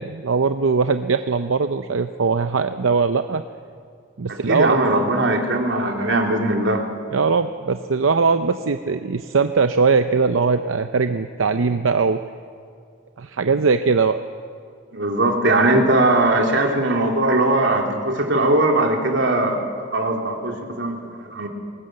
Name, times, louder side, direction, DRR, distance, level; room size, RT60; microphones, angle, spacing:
voice 1, 0.0-3.4 4.2-4.7 7.1-12.2 13.2-14.2, right 4 dB, 90° right, 9 dB, 0.6 m, -20 dB
voice 2, 4.3-6.8 14.9-19.6 19.9-21.0 21.3-21.5, right 2 dB, 70° right, 1 dB, 2.9 m, -20 dB
20.5 x 18.5 x 7.8 m, 2.2 s
head